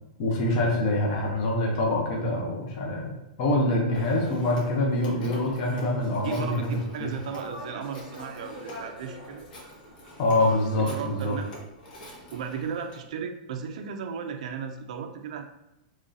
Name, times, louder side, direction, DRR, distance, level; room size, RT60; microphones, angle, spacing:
voice 1, 0.2-3.1 3.4-7.1 10.2-11.3, left 1 dB, 30° left, -1 dB, 0.6 m, -25 dB
Telephone, 3.9-13.0, equal, 85° left, 1.3 m, -44 dB
voice 2, 6.1-9.4 10.8-11.5 12.3-15.4, right 7 dB, 50° right, 5 dB, 0.4 m, -35 dB
3.1 x 2.6 x 3.8 m, 0.90 s
supercardioid pair, 180°, 5 cm